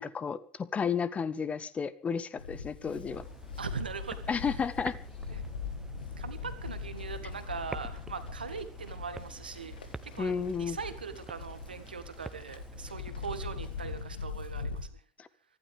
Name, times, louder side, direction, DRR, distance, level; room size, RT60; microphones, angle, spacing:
voice 1, 0.0-3.2 4.3-4.9 10.2-10.8, left 6 dB, 25° left, 16 dB, 1.6 m, -32 dB
Livestock farm animals working animals, 2.4-14.9, left 5 dB, 80° left, 1.9 m, -41 dB
sound 1, 3.1-14.0, right 3 dB, 10° right, 1.5 m, -48 dB
voice 2, 3.6-4.6 5.3-5.4 6.2-9.7 10.0-14.7, right 5 dB, 80° right, 11 dB, 1.7 m, -41 dB
24.5 x 16.0 x 3.5 m, 0.42 s
figure-of-eight pair, 70°, 5 cm